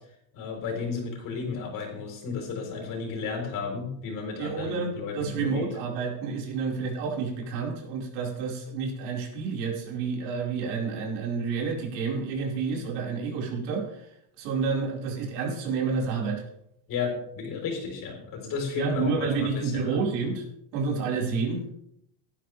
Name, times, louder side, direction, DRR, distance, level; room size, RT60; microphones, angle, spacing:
voice 1, 0.3-5.7 16.9-20.0, left 5 dB, 40° left, 2 dB, 4.1 m, -33 dB
voice 2, 4.4-14.1 14.4-16.5 18.7-20.4 20.7-21.6, right 5 dB, 90° right, -2 dB, 5.1 m, -29 dB
17.0 x 12.0 x 3.4 m, 0.74 s
cardioid pair, 170°, 48 cm